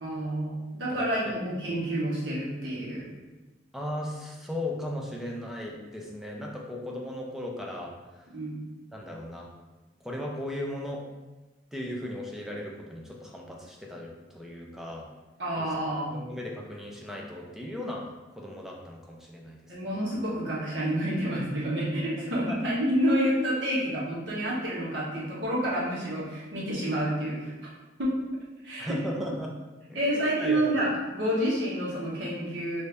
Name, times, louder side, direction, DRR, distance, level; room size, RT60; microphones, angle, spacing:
voice 1, 0.0-3.1 8.3-8.6 15.4-16.2 19.7-27.5 28.0-28.2 28.6-29.0 29.9-32.8, right 1 dB, 90° right, -6 dB, 1.2 m, -29 dB
voice 2, 3.7-8.2 8.9-9.5 10.0-11.0 11.7-15.1 15.6-15.7 16.1-18.0 18.4-19.9 22.5-22.6 28.8-29.5 29.9-30.6, left 1 dB, ahead, -2 dB, 0.5 m, -37 dB
3.2 x 2.6 x 3.3 m, 1.1 s
head